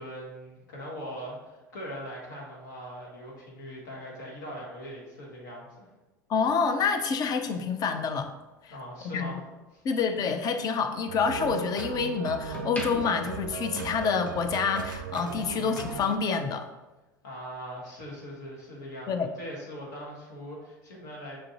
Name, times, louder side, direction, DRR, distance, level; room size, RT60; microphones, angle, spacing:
voice 1, 0.0-5.9 8.7-9.4 9.7-9.8 17.2-21.4, equal, 70° left, -3 dB, 1.3 m, -41 dB
voice 2, 6.3-8.3 8.6-8.7 9.1-9.3 9.8-16.7 19.1-19.3, left 5 dB, 40° left, 7 dB, 0.5 m, -27 dB
sound 1, 7.7-10.0 10.4-11.9 12.3-14.4 14.7-15.0, left 1 dB, 15° left, 0.9 m, -43 dB
sound 2, 11.1-16.2, right 6 dB, 85° right, 0.4 m, -37 dB
6.2 x 2.5 x 2.9 m, 1.1 s
hypercardioid pair, 80°, 10 cm